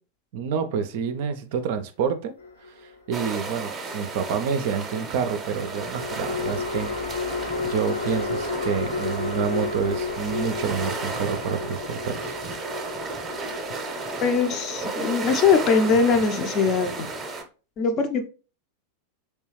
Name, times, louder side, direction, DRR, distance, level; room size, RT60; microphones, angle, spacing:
voice 1, 0.3-2.3 2.8-7.3 7.6-12.4, right 7 dB, 50° right, 0.4 m, -28 dB
sound 1, 2.4-3.3 5.5-16.9, left 4 dB, 70° left, 0.7 m, -33 dB
sound 2, 3.1-17.4, right 3 dB, 20° right, 0.8 m, -34 dB
voice 2, 14.2-17.1 17.8-18.3, left 5 dB, 35° left, 0.6 m, -21 dB
3.3 x 3.0 x 3.1 m
figure-of-eight pair, 90°, 0 cm